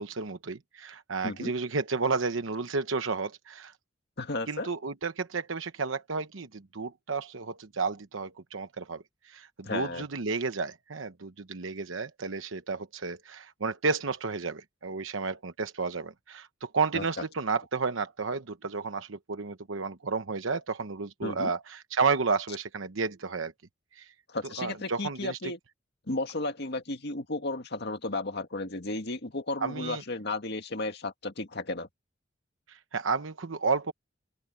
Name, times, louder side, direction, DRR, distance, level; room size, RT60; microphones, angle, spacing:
voice 1, 0.0-3.7 4.5-23.5 23.9-24.1 24.6-25.5 29.6-30.0 32.7-33.9, right 4 dB, 90° right, 1.0 m, -32 dB
voice 2, 4.2-4.7 9.6-10.0 16.9-17.2 21.2-21.5 24.3-25.6 26.1-31.9, left 2 dB, 60° left, 2.0 m, -34 dB
open air
head